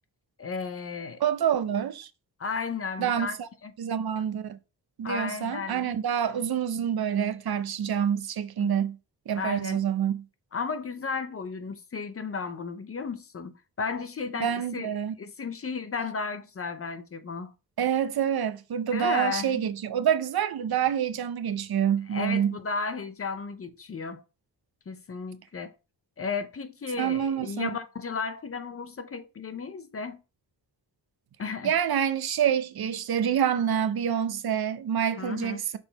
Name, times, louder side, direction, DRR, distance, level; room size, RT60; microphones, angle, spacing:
voice 1, 0.4-1.2 2.4-3.4 3.6-3.7 5.0-5.9 8.6-8.7 9.3-9.8 10.5-13.5 13.8-14.9 15.2-17.5 18.9-19.7 22.1-24.2 24.9-25.7 26.2-30.2 31.4-31.7 35.2-35.6, left 5 dB, 35° left, 0.5 m, -34 dB
voice 2, 1.2-2.1 3.0-3.5 3.8-4.6 5.0-9.0 9.3-10.2 14.4-15.1 17.8-22.5 27.0-27.7 31.6-35.8, right 9 dB, 60° right, 0.6 m, -27 dB
6.1 x 3.9 x 3.9 m
wide cardioid pair, 180°, 41 cm